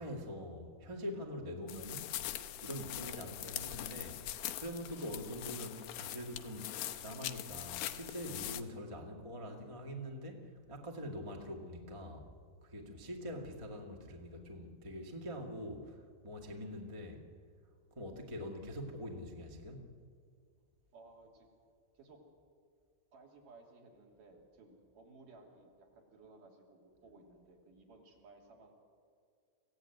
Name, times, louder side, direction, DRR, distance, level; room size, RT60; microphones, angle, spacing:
voice 1, 0.0-2.3 2.6-4.2 4.6-12.3 12.6-17.2 17.9-19.9, equal, 15° right, 1 dB, 1.1 m, -44 dB
sound 1, 1.7-8.6, left 13 dB, 85° left, 2.8 m, -42 dB
voice 2, 12.9-13.3 20.9-21.5 21.9-22.2 23.1-28.7, right 3 dB, 60° right, 0 dB, 4.6 m, -59 dB
25.5 x 16.5 x 9.4 m, 2.2 s
omnidirectional pair, 4.4 m